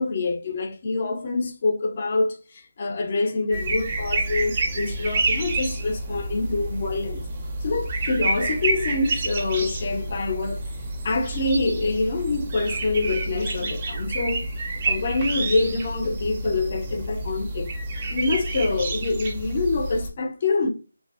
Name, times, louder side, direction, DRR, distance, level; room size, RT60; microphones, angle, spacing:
voice 1, 0.0-7.2 7.6-10.6 11.0-14.5 14.8-17.7 18.1-20.7, left 3 dB, 35° left, 0.5 m, -26 dB
sound 1, 3.5-20.1, right 2 dB, 25° right, 0.4 m, -29 dB
2.5 x 2.3 x 2.4 m
figure-of-eight pair, 170°, 0 cm